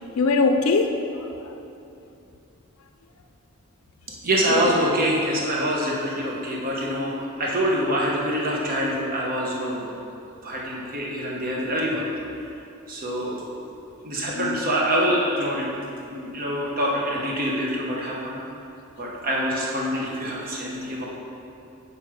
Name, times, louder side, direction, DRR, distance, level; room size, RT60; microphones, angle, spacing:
voice 1, 0.0-1.5 4.5-4.6 14.3-14.6, left 3 dB, 75° left, 5 dB, 0.4 m, -23 dB
voice 2, 4.2-9.9 10.4-12.0 12.9-13.4 14.0-18.4 19.0-21.1, equal, 45° right, -3 dB, 1.0 m, -25 dB
7.7 x 4.2 x 5.0 m, 2.7 s
head